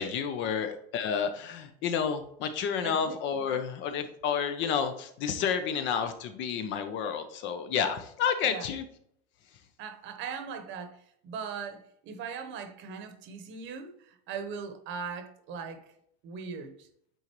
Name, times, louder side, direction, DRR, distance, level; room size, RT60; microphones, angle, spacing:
voice 1, 0.0-8.8, left 7 dB, 40° left, 8 dB, 0.6 m, -30 dB
voice 2, 2.8-3.2 8.4-8.7 9.8-11.0 11.2-15.8 16.2-16.7, right 6 dB, 40° right, 7 dB, 1.0 m, -39 dB
9.0 x 3.8 x 3.0 m, 0.69 s
supercardioid pair, 140°, 30 cm